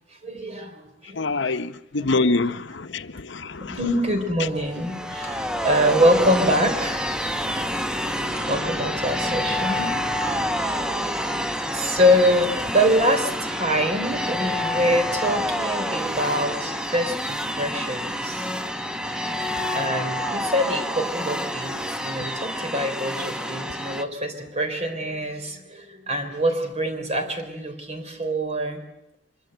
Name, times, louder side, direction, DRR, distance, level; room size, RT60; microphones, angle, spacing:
voice 1, 0.2-1.6 2.1-2.3 3.6-7.1 8.5-11.1 11.7-18.5 19.7-28.8, equal, 35° right, 3.8 m, -25 dB
voice 2, 1.1-3.8 8.0-8.5 19.6-20.1, left 3 dB, 70° left, 0.9 m, -27 dB
sound 1, 4.6-24.0, equal, 5° right, 1.1 m, -28 dB
24.5 x 22.5 x 7.9 m
head